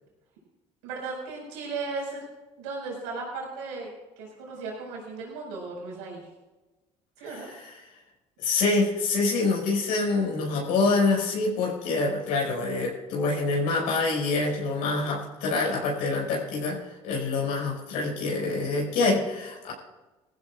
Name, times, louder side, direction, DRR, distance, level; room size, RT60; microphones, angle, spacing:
voice 1, 0.8-2.3 2.6-3.9 4.2-6.3 7.2-7.5, right 3 dB, 90° right, -1 dB, 5.2 m, -36 dB
voice 2, 7.3-7.7 8.4-19.7, left 3 dB, 80° left, -1 dB, 5.6 m, -26 dB
20.5 x 15.0 x 2.5 m, 1.1 s
supercardioid pair, 65°, 15 cm